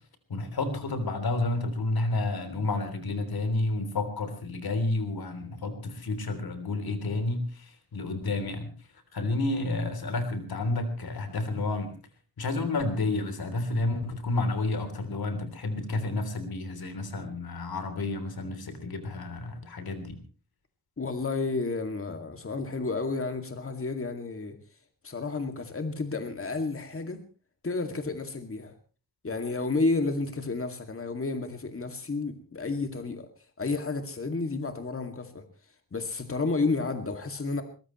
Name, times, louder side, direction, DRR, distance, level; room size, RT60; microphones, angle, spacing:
voice 1, 0.3-8.7 9.1-11.9 12.4-20.2, left 2 dB, 90° left, 8 dB, 3.4 m, -30 dB
voice 2, 21.0-24.6 25.0-27.2 27.6-28.7 29.2-33.3 33.6-35.4 35.9-37.6, left 3 dB, 40° left, 6 dB, 2.3 m, -31 dB
22.5 x 20.0 x 3.1 m, 0.35 s
wide cardioid pair, 115°, 36 cm